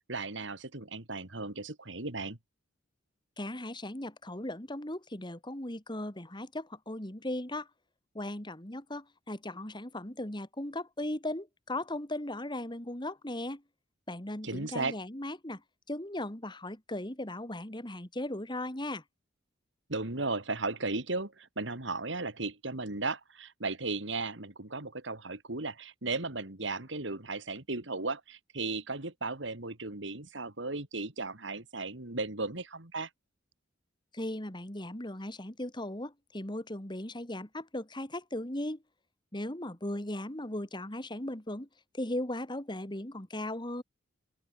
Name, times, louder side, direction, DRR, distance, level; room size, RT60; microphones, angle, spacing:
voice 1, 0.1-2.4 14.4-15.0 19.9-33.1, right 3 dB, 70° right, 2.8 m, -36 dB
voice 2, 3.4-7.7 8.1-13.6 14.1-15.6 15.9-19.0 34.1-38.8 39.3-41.7 41.9-43.8, left 1 dB, 25° left, 2.9 m, -37 dB
open air
head